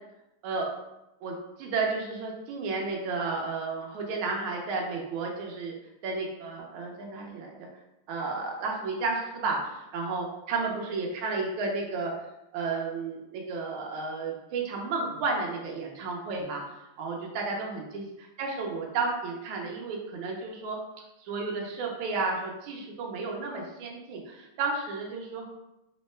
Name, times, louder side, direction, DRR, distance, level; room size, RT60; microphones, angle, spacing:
voice 1, 1.2-5.7 6.0-7.7 8.1-12.1 12.5-16.6 17.0-18.1 18.4-20.8 21.2-25.4, right 3 dB, 80° right, -1 dB, 1.4 m, -32 dB
3.5 x 2.1 x 3.1 m, 0.93 s
omnidirectional pair, 2.3 m